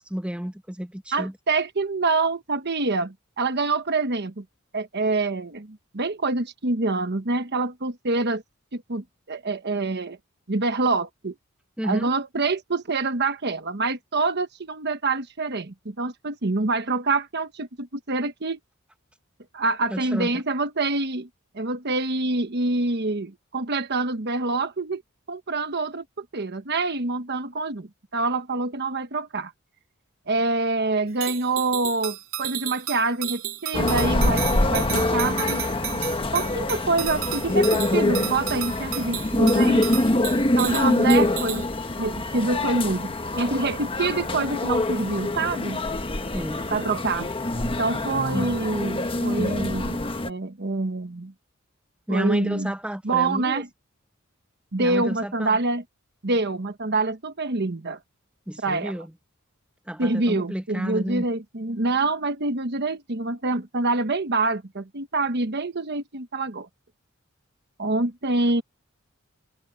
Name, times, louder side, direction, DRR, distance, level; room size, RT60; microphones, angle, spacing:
voice 1, 0.0-1.3 11.8-12.1 19.9-20.3 46.3-46.7 52.1-53.6 54.8-55.6 58.5-59.1 59.9-61.3, equal, 5° right, 1.3 m, -31 dB
voice 2, 1.1-4.4 4.7-8.4 8.7-10.2 10.5-11.3 11.8-18.6 19.5-21.3 21.5-25.0 25.3-29.5 30.3-36.0 36.3-39.9 40.5-41.7 42.0-45.8 46.7-47.3 47.8-51.3 52.1-52.7 53.0-53.7 54.7-55.8 56.2-58.0 58.6-59.0 60.0-66.7 67.8-68.6, right 3 dB, 55° right, 1.2 m, -26 dB
sound 1, 31.2-41.7, right 12 dB, 75° right, 3.1 m, -33 dB
sound 2, 33.7-50.3, left 2 dB, 25° left, 1.3 m, -25 dB
head